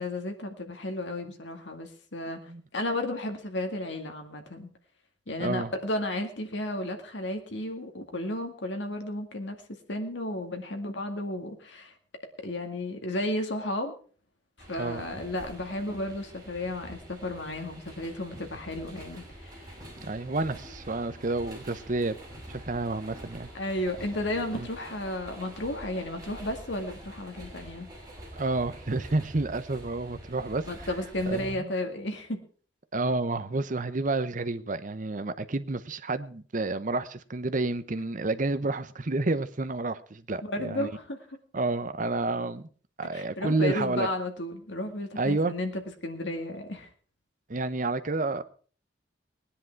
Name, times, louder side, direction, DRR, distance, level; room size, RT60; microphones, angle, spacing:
voice 1, 0.0-2.4 2.7-4.7 5.3-9.6 9.9-11.9 12.4-13.9 14.7-19.9 23.5-27.9 30.7-32.4 40.4-41.2 43.1-46.9, left 1 dB, 70° left, 2.2 m, -33 dB
voice 2, 5.4-5.7 14.8-15.0 20.0-22.2 22.5-23.5 24.5-24.7 28.4-30.9 31.3-31.7 32.9-40.9 41.5-42.7 43.0-44.1 45.2-45.5 47.5-48.4, right 2 dB, 45° right, 0.8 m, -30 dB
sound 1, 14.6-31.5, right 1 dB, 20° right, 5.4 m, -46 dB
19.0 x 10.0 x 4.6 m
head